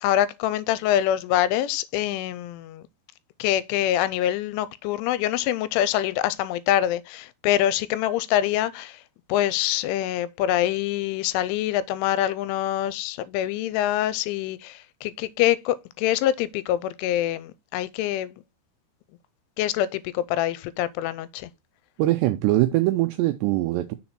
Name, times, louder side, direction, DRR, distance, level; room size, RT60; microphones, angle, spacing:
voice 1, 0.0-2.9 3.4-9.0 9.3-18.4 19.6-21.5, left 12 dB, 85° left, 3.0 m, -25 dB
voice 2, 22.0-23.9, right 16 dB, 85° right, 2.4 m, -22 dB
6.6 x 4.3 x 5.7 m
omnidirectional pair, 5.5 m